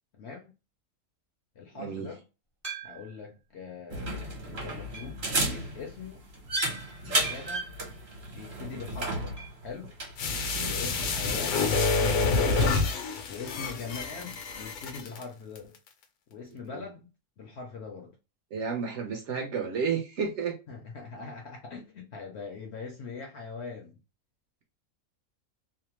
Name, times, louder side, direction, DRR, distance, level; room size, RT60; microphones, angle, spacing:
voice 1, 0.2-0.5 1.6-2.2 2.8-6.2 7.0-7.7 8.3-9.3 9.6-9.9 10.7-12.8 13.3-15.8 16.3-17.1 17.4-18.2 20.7-24.0, left 5 dB, 60° left, 0.7 m, -42 dB
voice 2, 1.7-2.1 10.5-10.9 13.9-14.0 16.7-16.8 18.5-20.6, right 6 dB, 65° right, 0.8 m, -32 dB
sound 1, 2.6-3.3 3.9-4.0 4.9-5.3 7.2-7.7 9.4-9.7 9.9-10.0 10.3-10.4 12.4-12.5, right 5 dB, 25° right, 0.5 m, -43 dB
sound 2, 3.9-12.8, right 2 dB, 45° right, 1.0 m, -34 dB
sound 3, 10.2-15.2 15.6-15.7, left 4 dB, 80° left, 1.1 m, -27 dB
2.7 x 2.1 x 2.9 m
omnidirectional pair, 1.6 m